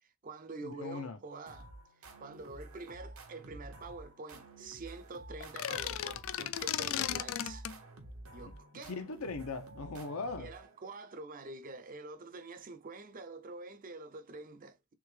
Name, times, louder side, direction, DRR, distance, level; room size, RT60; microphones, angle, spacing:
voice 1, 0.0-1.7 2.2-7.7 8.3-9.0 10.4-14.9, right 3 dB, 40° right, 0.5 m, -46 dB
voice 2, 0.6-1.2 8.5-8.6 8.9-10.5, left 3 dB, 90° left, 0.8 m, -39 dB
sound 1, 1.5-11.0, right 1 dB, 80° right, 1.2 m, -51 dB
sound 2, 5.4-7.8, left 11 dB, 70° left, 0.4 m, -35 dB
3.5 x 3.5 x 3.2 m
head